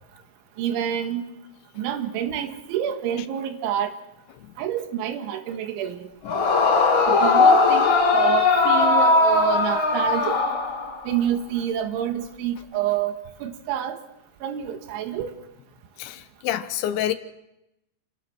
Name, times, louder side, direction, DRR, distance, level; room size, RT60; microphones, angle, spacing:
voice 1, 0.6-1.3 1.8-3.9 4.6-6.1 7.1-10.4 11.1-14.0 14.4-15.3, right 9 dB, 75° right, 3.9 m, -27 dB
Yell / Screaming, 6.3-11.2, left 3 dB, 40° left, 1.9 m, -19 dB
voice 2, 16.0-17.1, left 11 dB, 75° left, 3.1 m, -28 dB
29.0 x 18.5 x 6.0 m
omnidirectional pair, 5.6 m